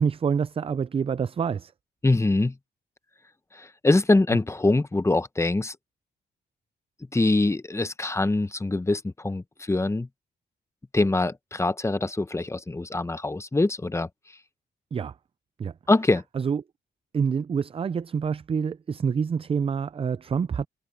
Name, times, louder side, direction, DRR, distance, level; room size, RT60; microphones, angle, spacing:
voice 1, 0.0-1.7 14.9-15.1 15.6-15.7 16.4-16.6 17.1-20.7, right 6 dB, 30° right, 0.4 m, -27 dB
voice 2, 2.0-2.6 3.5-5.8 7.1-10.1 10.9-14.1 15.9-16.2, left 2 dB, 15° left, 0.9 m, -24 dB
cardioid pair, 85°, 18 cm